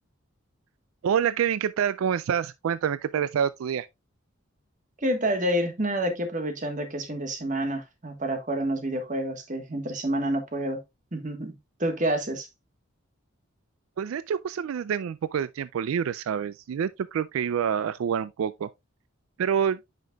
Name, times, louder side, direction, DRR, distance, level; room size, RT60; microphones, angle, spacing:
voice 1, 1.0-3.9 14.0-18.7 19.4-19.8, right 8 dB, 80° right, 0.3 m, -27 dB
voice 2, 5.0-10.8 11.1-11.5 11.8-12.5, right 1 dB, 35° right, 1.4 m, -28 dB
9.3 x 5.2 x 2.3 m
head